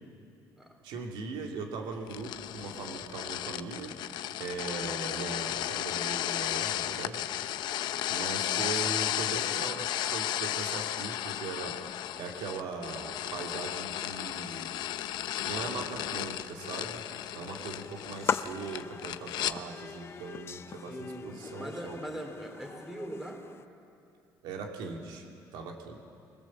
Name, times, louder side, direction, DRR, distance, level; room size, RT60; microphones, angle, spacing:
voice 1, 0.8-3.9 4.4-7.2 8.1-14.8 15.5-17.0 17.3-22.0 24.4-25.2 25.5-26.0, right 4 dB, 80° right, 2 dB, 2.5 m, -39 dB
sound 1, 2.1-19.6, left 12 dB, 70° left, 0.7 m, -34 dB
sound 2, 17.5-23.7, left 7 dB, 35° left, 0.5 m, -39 dB
voice 2, 20.9-23.5, equal, 5° right, 2 dB, 3.0 m, -41 dB
24.0 x 18.0 x 7.4 m, 2.6 s
cardioid pair, 135°, 8 cm